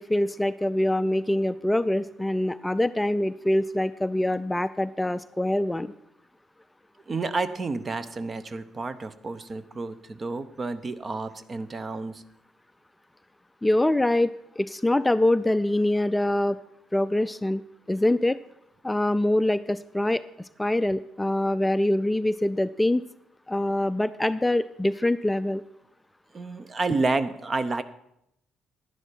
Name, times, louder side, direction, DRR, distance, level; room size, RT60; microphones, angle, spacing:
voice 1, 0.0-5.9 13.6-16.6 16.9-17.6 17.9-18.4 18.8-23.0 23.5-25.6, left 1 dB, 10° left, 14 dB, 0.4 m, -24 dB
voice 2, 7.1-12.2 26.3-27.8, right 3 dB, 35° right, 14 dB, 0.8 m, -30 dB
10.5 x 10.5 x 4.5 m, 0.79 s
hypercardioid pair, 50°, 0 cm